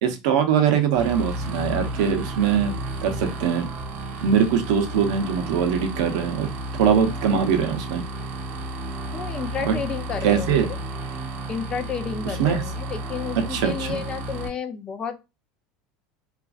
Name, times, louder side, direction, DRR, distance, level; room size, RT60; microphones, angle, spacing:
voice 1, 0.0-2.8 3.0-3.7 4.2-8.0 9.6-9.7 10.2-10.7 12.4-12.6 13.5-14.0, right 7 dB, 75° right, 6 dB, 0.7 m, -22 dB
sound 1, 0.9-14.5, right 1 dB, 40° right, 0.7 m, -32 dB
voice 2, 9.1-10.8 11.5-15.2, left 6 dB, 25° left, 8 dB, 0.4 m, -31 dB
3.0 x 2.5 x 2.4 m, 0.25 s
supercardioid pair, 135°, 3 cm